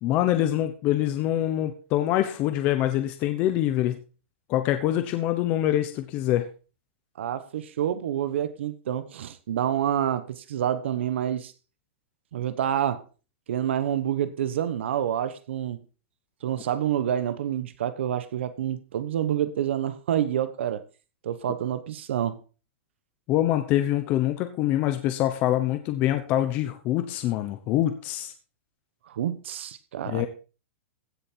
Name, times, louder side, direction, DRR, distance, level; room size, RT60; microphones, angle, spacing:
voice 1, 0.0-4.0 4.5-6.5 23.3-28.3 30.1-30.3, left 13 dB, 25° left, 1.0 m, -25 dB
voice 2, 7.2-11.5 12.3-13.0 13.5-15.8 16.4-20.9 21.2-22.4 29.1-30.3, right 10 dB, 65° right, 1.3 m, -28 dB
15.5 x 7.3 x 4.6 m
supercardioid pair, 175°, 7 cm